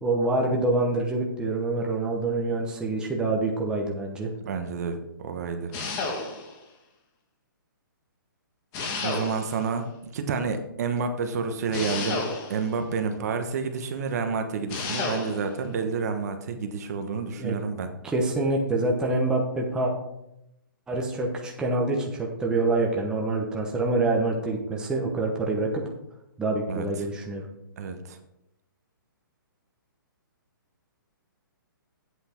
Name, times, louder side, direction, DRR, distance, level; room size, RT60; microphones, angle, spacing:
voice 1, 0.0-4.3 17.4-17.6 18.0-19.9 20.9-25.8 26.4-27.5, right 2 dB, 5° right, -1 dB, 1.0 m, -26 dB
voice 2, 4.4-5.7 9.0-9.9 10.1-17.9 26.7-26.8 27.8-28.2, right 5 dB, 45° right, 7 dB, 1.1 m, -29 dB
sound 1, 5.7-6.6 8.7-9.7 11.7-12.7 14.7-15.5, left 3 dB, 25° left, 1.4 m, -31 dB
8.3 x 7.7 x 4.4 m, 0.85 s
hypercardioid pair, 155°, 12 cm